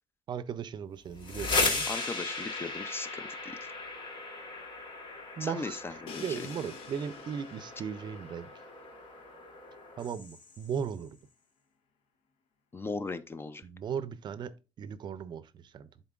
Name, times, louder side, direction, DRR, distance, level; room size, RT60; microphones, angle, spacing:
voice 1, 0.3-1.9 5.4-5.8 6.2-8.5 10.0-11.2 13.6-15.9, right 7 dB, 50° right, 0.5 m, -37 dB
sound 1, 1.1-10.8, left 3 dB, 55° left, 1.3 m, -36 dB
voice 2, 1.9-3.7 5.4-6.5 12.7-13.7, left 3 dB, 25° left, 0.4 m, -38 dB
Crash cymbal, 6.1-9.9, left 5 dB, 80° left, 0.8 m, -49 dB
10.5 x 3.9 x 2.4 m
cardioid pair, 105°, 10 cm